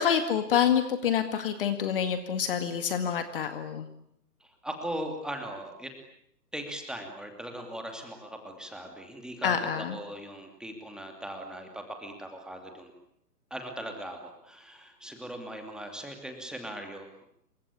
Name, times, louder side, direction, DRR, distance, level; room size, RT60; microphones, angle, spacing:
voice 1, 0.0-3.9 9.4-9.9, left 8 dB, 35° left, 9 dB, 2.1 m, -27 dB
voice 2, 4.4-5.9 6.5-12.9 13.5-17.3, right 1 dB, ahead, 4 dB, 2.7 m, -39 dB
28.0 x 24.5 x 8.7 m, 0.72 s
figure-of-eight pair, 135°, 50 cm